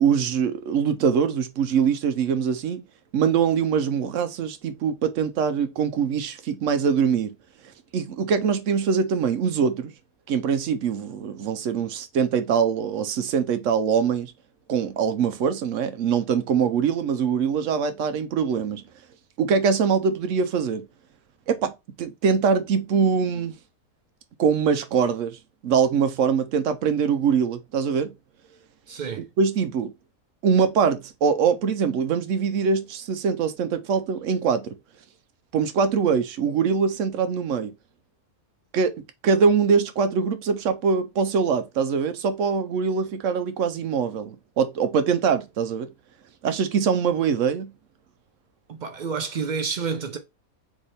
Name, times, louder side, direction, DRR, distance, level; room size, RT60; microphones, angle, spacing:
voice 1, 0.0-2.8 3.1-7.4 7.9-9.9 10.3-14.3 14.7-18.8 19.4-20.9 21.5-21.7 22.0-23.5 24.4-25.4 25.6-28.1 29.2-29.9 30.4-34.8 35.5-37.7 38.7-38.9 39.2-45.9 46.4-47.7, right 6 dB, 65° right, 0.9 m, -23 dB
voice 2, 28.9-29.2 48.7-50.2, right 5 dB, 80° right, 0.4 m, -29 dB
3.6 x 3.3 x 4.1 m
omnidirectional pair, 1.5 m